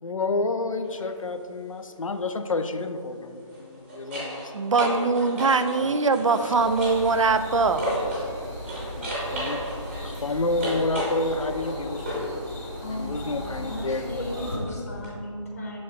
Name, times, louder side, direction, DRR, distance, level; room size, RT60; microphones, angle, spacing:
voice 1, 0.0-4.5 5.8-5.9 6.4-6.5 9.0-9.6 10.0-12.3 12.9-14.3, left 2 dB, 80° left, 8 dB, 0.6 m, -29 dB
sound 1, 0.8-1.1 3.4-8.3 8.6-12.4 15.0-15.1, equal, 20° right, 1.5 m, -33 dB
voice 2, 4.5-7.8, right 4 dB, 70° right, 10 dB, 0.4 m, -22 dB
sound 2, 6.5-14.5, equal, ahead, 0.5 m, -37 dB
voice 3, 12.8-15.8, left 1 dB, 30° left, -1 dB, 0.7 m, -36 dB
6.4 x 4.2 x 4.3 m, 2.3 s
figure-of-eight pair, 170°, 17 cm